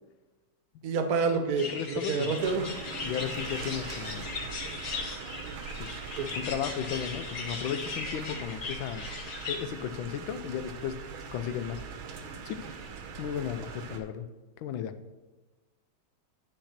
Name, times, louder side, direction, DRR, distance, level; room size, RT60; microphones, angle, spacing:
voice 1, 0.8-2.7 6.2-6.3, right 4 dB, 55° right, 6 dB, 1.2 m, -28 dB
voice 2, 1.6-2.4 3.0-4.3 5.8-6.0 6.4-9.1 9.5-11.8 12.4-12.6 13.2-14.3 14.6-15.0, left 9 dB, 80° left, 11 dB, 1.4 m, -35 dB
sound 1, 1.6-9.6, left 4 dB, 50° left, 1.4 m, -38 dB
sound 2, 2.4-14.0, right 5 dB, 80° right, 1.8 m, -42 dB
9.9 x 4.4 x 5.8 m, 1.2 s
omnidirectional pair, 2.2 m